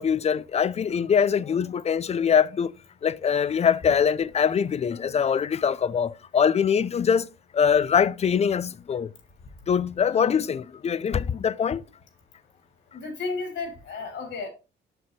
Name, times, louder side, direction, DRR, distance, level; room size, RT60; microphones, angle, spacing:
voice 1, 0.0-2.7 3.0-7.3 7.5-9.1 9.7-11.8, left 7 dB, 35° left, 0.4 m, -23 dB
voice 2, 10.1-10.4 12.9-14.5, left 3 dB, 70° left, 3.4 m, -33 dB
7.6 x 6.5 x 2.9 m
cardioid pair, 90°, 20 cm